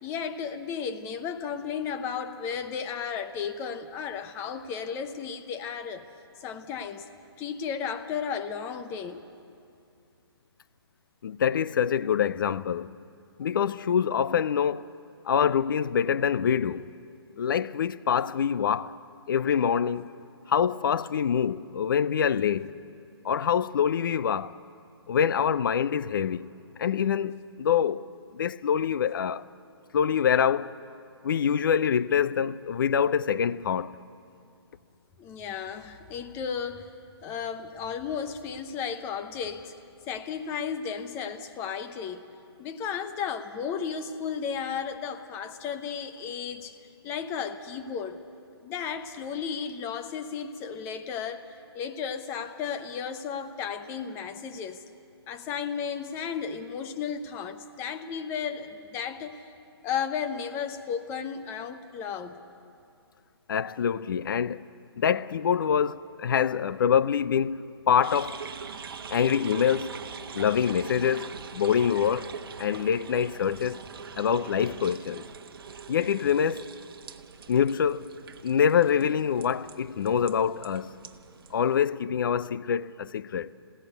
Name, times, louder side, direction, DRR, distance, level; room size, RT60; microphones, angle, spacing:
voice 1, 0.0-6.0 6.4-7.1 7.4-9.2 35.2-36.9 37.2-39.7 40.1-42.2 42.6-46.8 47.0-48.2 48.6-51.5 51.7-54.8 55.3-59.4 59.8-62.4, left 7 dB, 15° left, 0.7 m, -34 dB
voice 2, 11.2-12.9 13.4-14.8 15.3-16.9 17.4-19.0 19.3-20.1 20.5-22.7 23.2-24.5 25.1-26.5 26.8-28.1 28.3-29.4 29.9-30.7 31.2-33.9 63.5-64.7 65.0-68.4 69.1-70.0 70.3-71.3 71.5-72.3 72.6-73.8 74.2-75.2 75.9-76.7 77.5-78.1 78.4-80.9 81.5-83.5, left 8 dB, 55° left, 0.5 m, -25 dB
sound 1, 68.0-81.8, right 6 dB, 55° right, 1.1 m, -42 dB
22.5 x 16.0 x 8.1 m
hypercardioid pair, 145°, 14 cm